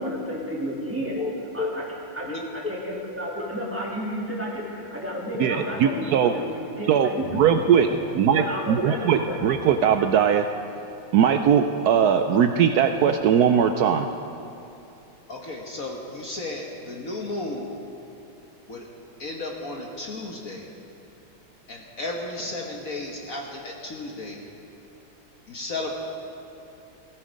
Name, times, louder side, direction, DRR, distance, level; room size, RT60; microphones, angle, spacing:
voice 1, 0.0-1.2 1.5-1.8 2.1-7.3 8.3-9.4 9.7-9.8, equal, 5° right, -5 dB, 2.7 m, -31 dB
voice 2, 1.2-1.7 2.2-2.7 15.3-17.7 18.7-18.9 19.2-20.7 21.7-24.4 25.5-25.9, left 2 dB, 45° left, 0 dB, 1.5 m, -33 dB
voice 3, 5.4-6.3 6.9-7.9 8.2-10.4 11.1-14.1, right 8 dB, 90° right, 7 dB, 0.8 m, -20 dB
18.0 x 14.0 x 5.2 m, 2.9 s
omnidirectional pair, 2.2 m